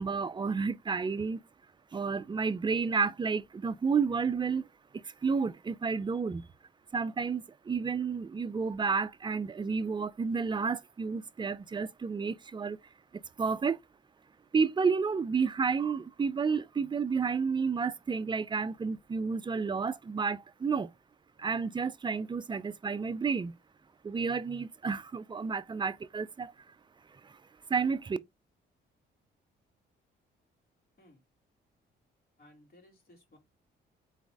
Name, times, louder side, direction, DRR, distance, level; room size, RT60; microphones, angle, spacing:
voice 1, 0.0-1.4 1.9-4.7 5.0-6.4 6.9-12.8 13.1-13.8 14.5-20.9 21.4-23.5 24.0-26.5 27.2-27.4 27.7-28.2, right 5 dB, 25° right, 0.5 m, -31 dB
voice 2, 32.4-33.4, left 1 dB, 50° left, 2.7 m, -59 dB
4.0 x 3.8 x 3.5 m
cardioid pair, 90°, 20 cm